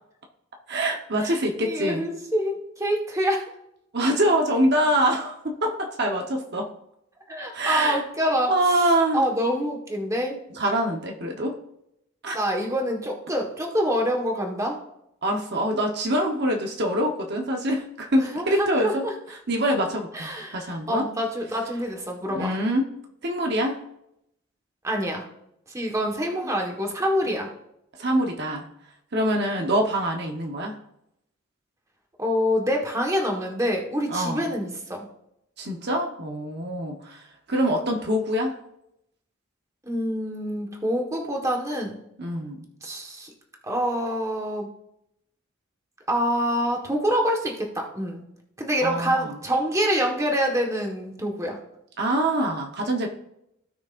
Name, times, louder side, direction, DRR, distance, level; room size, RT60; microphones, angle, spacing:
voice 1, 0.7-2.0 3.9-6.7 7.5-8.0 8.5-9.2 10.6-11.6 12.2-12.4 15.2-19.0 19.5-21.0 22.3-22.9 23.2-23.8 26.4-26.5 28.0-28.7 29.1-30.7 34.1-34.4 35.6-37.2 37.5-38.5 42.2-42.6 48.8-49.4 52.0-53.1, right 1 dB, 55° right, 1 dB, 1.1 m, -24 dB
voice 2, 1.2-3.5 7.3-8.5 9.1-10.4 12.3-14.8 18.2-19.1 20.1-22.5 24.8-25.3 25.7-27.5 32.2-35.1 39.8-42.0 42.8-43.3 43.6-44.7 46.1-48.2 48.6-51.6, equal, 15° right, 1 dB, 1.4 m, -26 dB
16.5 x 6.2 x 2.5 m, 0.80 s
head